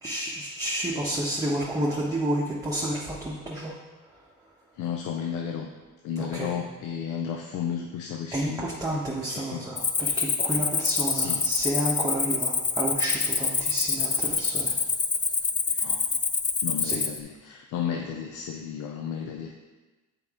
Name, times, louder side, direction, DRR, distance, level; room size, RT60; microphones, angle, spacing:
voice 1, 0.0-3.8 6.2-6.6 8.3-14.7 16.8-17.0, right 1 dB, 10° right, -5 dB, 1.1 m, -30 dB
voice 2, 4.8-5.7 6.0-9.0 9.3-9.7 11.1-11.4 11.7-11.8 12.4-12.5 14.6-14.7 15.2-15.3 15.7-16.0 16.6-19.5, left 8 dB, 90° left, 3 dB, 0.6 m, -33 dB
Cricket, 9.8-17.2, left 5 dB, 25° left, 0.5 m, -26 dB
7.4 x 4.7 x 3.7 m, 1.2 s
cardioid pair, 90°, 30 cm